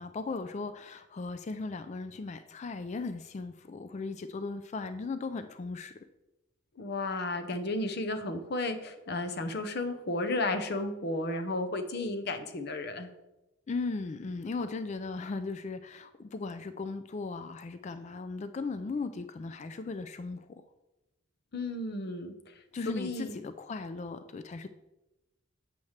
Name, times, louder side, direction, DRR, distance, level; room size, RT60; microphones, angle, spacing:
voice 1, 0.0-5.9 13.7-20.6 22.7-24.7, left 3 dB, 35° left, 11 dB, 0.3 m, -37 dB
voice 2, 6.8-13.1 21.5-22.4 23.0-23.3, left 2 dB, 55° left, 8 dB, 0.7 m, -33 dB
7.7 x 7.1 x 3.2 m, 0.98 s
head